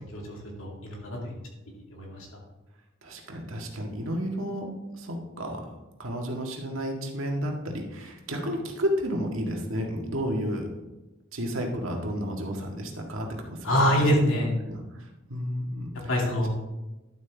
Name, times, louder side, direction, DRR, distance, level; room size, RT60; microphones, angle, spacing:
voice 1, 0.1-1.2 1.9-2.2 13.6-14.5 16.1-16.5, equal, 75° left, -1 dB, 2.6 m, -25 dB
voice 2, 3.0-5.7 6.0-10.7 11.3-16.1, equal, 80° right, 1 dB, 1.8 m, -32 dB
11.5 x 7.8 x 3.5 m, 1.0 s
head